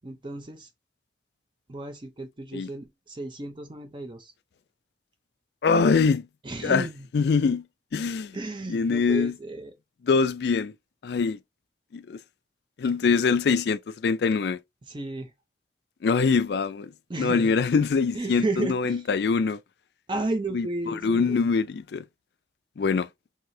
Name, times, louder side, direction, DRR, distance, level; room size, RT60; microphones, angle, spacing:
voice 1, 0.0-0.7 1.7-4.3 6.4-7.1 8.3-9.7 14.9-15.3 17.1-17.6 18.1-19.1 20.1-21.4, right 2 dB, 25° right, 0.5 m, -33 dB
voice 2, 5.6-6.3 6.6-6.9 7.1-7.6 7.9-8.4 8.7-9.3 10.1-10.7 11.0-11.4 11.9-12.2 12.8-14.6 16.0-16.9 17.2-19.6 20.5-22.0 22.8-23.1, left 5 dB, 65° left, 0.4 m, -23 dB
4.7 x 2.7 x 2.7 m
head